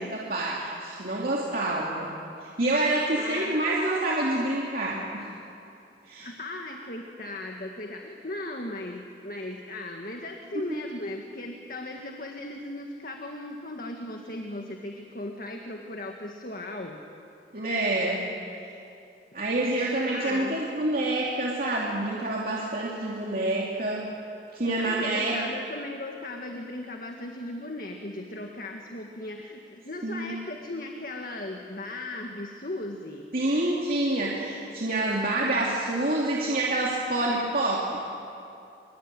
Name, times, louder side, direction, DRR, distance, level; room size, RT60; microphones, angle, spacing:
voice 1, 0.0-2.1 2.4-5.3 6.1-6.3 17.5-18.2 19.3-24.1 24.5-25.4 30.0-30.3 33.3-38.1, right 2 dB, 50° right, -4 dB, 3.1 m, -27 dB
voice 2, 3.1-3.5 6.2-17.0 20.1-20.6 24.6-33.3, left 2 dB, 50° left, 2 dB, 1.9 m, -37 dB
25.0 x 24.0 x 9.2 m, 2.7 s
head